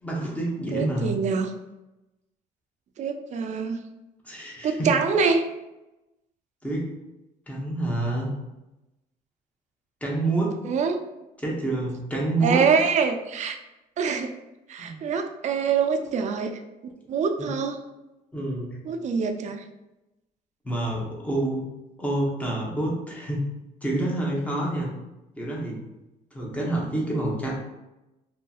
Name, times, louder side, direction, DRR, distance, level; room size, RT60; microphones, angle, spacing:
voice 1, 0.0-1.2 4.2-4.9 6.6-6.9 7.5-8.3 10.0-10.6 11.4-12.7 14.8-15.1 17.4-17.5 18.3-18.8 20.6-21.7 22.0-23.5 23.8-24.9 25.4-25.8 26.3-27.5, right 2 dB, 10° left, -3 dB, 0.8 m, -27 dB
voice 2, 0.7-1.5 3.0-3.8 4.6-5.4 10.6-11.0 12.4-13.6 14.0-14.3 14.7-16.5 17.1-17.8 18.9-19.6, right 5 dB, 45° right, 7 dB, 0.4 m, -24 dB
2.8 x 2.7 x 2.3 m, 0.98 s
cardioid pair, 110°, 17 cm